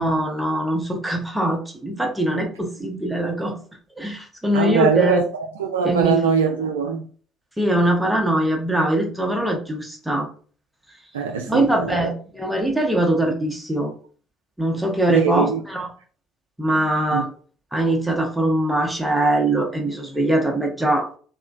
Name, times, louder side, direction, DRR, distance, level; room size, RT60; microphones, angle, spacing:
voice 1, 0.0-3.6 4.0-5.2 5.8-6.2 7.6-10.3 11.5-13.9 14.6-15.9 16.6-17.3 17.7-21.1, right 1 dB, 10° right, 0.8 m, -22 dB
voice 2, 4.5-7.1 11.1-12.1 15.1-15.6 17.1-17.3, right 5 dB, 75° right, 0.3 m, -22 dB
2.9 x 2.3 x 2.5 m
figure-of-eight pair, 50°, 0 cm